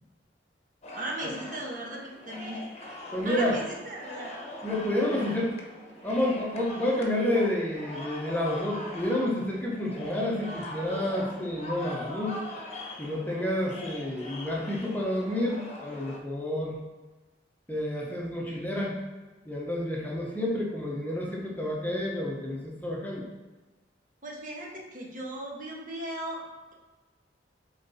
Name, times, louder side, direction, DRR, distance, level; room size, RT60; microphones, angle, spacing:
sound 1, 0.8-16.2, left 1 dB, 35° left, 1.1 m, -42 dB
voice 1, 0.9-2.7 3.2-4.3 24.2-26.4, right 1 dB, 45° right, -2 dB, 1.5 m, -37 dB
voice 2, 3.1-3.6 4.6-5.6 6.0-12.4 13.0-16.8 17.7-19.0 19.5-23.3, left 1 dB, 10° left, -3 dB, 1.1 m, -29 dB
7.4 x 4.0 x 4.2 m, 1.2 s
head